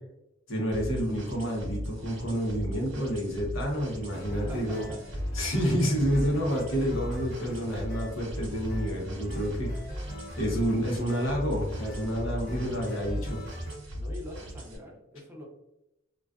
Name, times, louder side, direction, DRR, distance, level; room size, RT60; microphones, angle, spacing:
voice 1, 0.5-4.8 5.3-10.0 10.4-13.4, equal, 85° left, -1 dB, 0.8 m, -29 dB
sound 1, 0.7-14.8, equal, 85° right, 0.7 m, -38 dB
sound 2, 4.1-13.8, equal, 50° left, 1.0 m, -40 dB
voice 2, 4.2-5.0 13.9-15.4, left 1 dB, 10° right, -1 dB, 0.5 m, -45 dB
2.3 x 2.3 x 2.3 m, 0.87 s
head